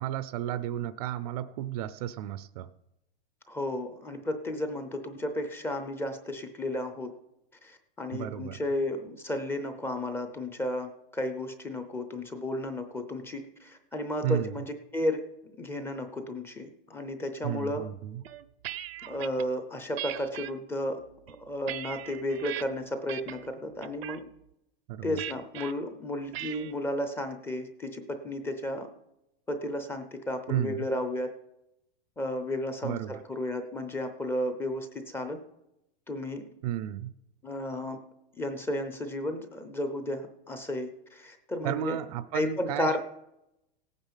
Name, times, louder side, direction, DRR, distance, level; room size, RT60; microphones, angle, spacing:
voice 1, 0.0-2.7 8.1-8.6 14.2-14.6 17.4-18.2 24.9-25.2 30.5-30.9 32.8-33.2 36.6-37.1 41.6-43.0, right 12 dB, 40° right, 15 dB, 0.6 m, -33 dB
voice 2, 3.5-7.1 7.6-15.2 15.6-17.9 19.1-21.0 21.3-24.2 25.0-28.9 29.5-31.3 32.2-35.4 36.1-36.5 37.4-38.0 38.4-42.0 42.3-43.0, left 1 dB, 10° left, 8 dB, 0.6 m, -33 dB
sound 1, 18.2-19.5 20.0-20.5 21.1-22.6 23.1-23.5 23.8-24.2 25.2-25.7 26.3-26.7, right 13 dB, 80° right, 0.9 m, -39 dB
16.5 x 9.0 x 5.7 m, 0.88 s
supercardioid pair, 165°, 30 cm